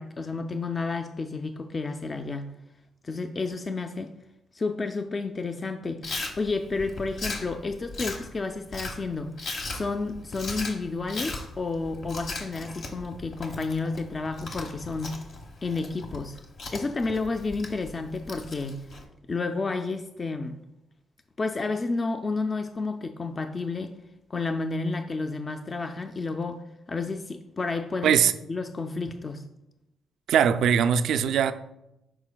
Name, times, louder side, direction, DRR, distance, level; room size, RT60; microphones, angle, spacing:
voice 1, 0.0-2.5 3.0-4.1 4.5-6.0 6.4-9.4 9.7-15.2 15.6-16.4 16.7-18.8 19.3-20.6 21.4-23.9 24.3-28.2 28.5-29.4, left 3 dB, 40° left, 7 dB, 0.4 m, -31 dB
Chewing mastication, 6.0-19.0, left 3 dB, 70° left, 1.1 m, -38 dB
voice 2, 30.3-31.5, right 8 dB, 75° right, 11 dB, 0.3 m, -21 dB
11.0 x 4.3 x 2.2 m, 0.89 s
supercardioid pair, 60°, 0 cm